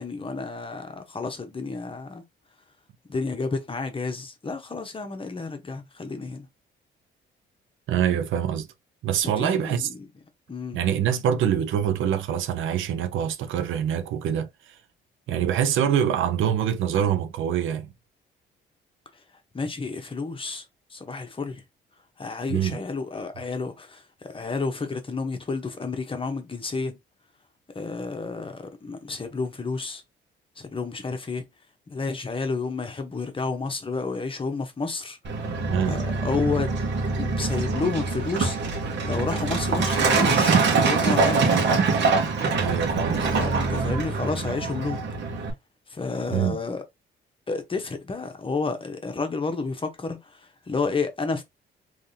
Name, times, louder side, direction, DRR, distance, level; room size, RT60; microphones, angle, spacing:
voice 1, 0.0-2.2 3.1-6.5 9.4-10.0 10.5-10.8 19.5-20.6 20.9-21.6 22.2-27.0 27.7-30.0 30.6-31.5 31.9-35.2 35.9-36.7 37.2-38.6 39.0-41.6 43.2-45.0 45.9-46.8 47.5-51.4, left 4 dB, 25° left, 1.0 m, -30 dB
voice 2, 7.9-8.7 9.0-9.9 10.7-14.5 15.3-17.9 22.5-22.8 35.7-36.0 42.5-43.4 46.3-46.6, right 9 dB, 80° right, 0.8 m, -25 dB
Truck, 35.2-45.5, right 4 dB, 65° right, 1.5 m, -24 dB
3.5 x 3.2 x 2.7 m
cardioid pair, 90°, 20 cm